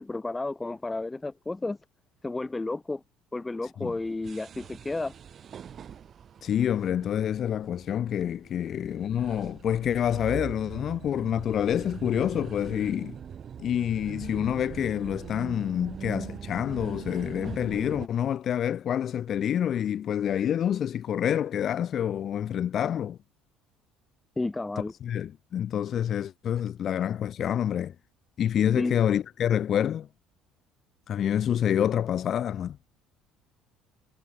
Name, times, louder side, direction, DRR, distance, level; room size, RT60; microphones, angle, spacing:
voice 1, 0.0-1.8 2.2-3.0 3.3-5.1 24.4-24.9 28.8-29.0, left 2 dB, 15° left, 1.8 m, -32 dB
sound 1, 3.9-18.1, right 8 dB, 45° right, 2.4 m, -42 dB
voice 2, 6.4-13.2 13.6-23.2 24.8-27.9 28.4-30.1 31.1-32.8, left 9 dB, 50° left, 0.6 m, -27 dB
supercardioid pair, 80°, 0 cm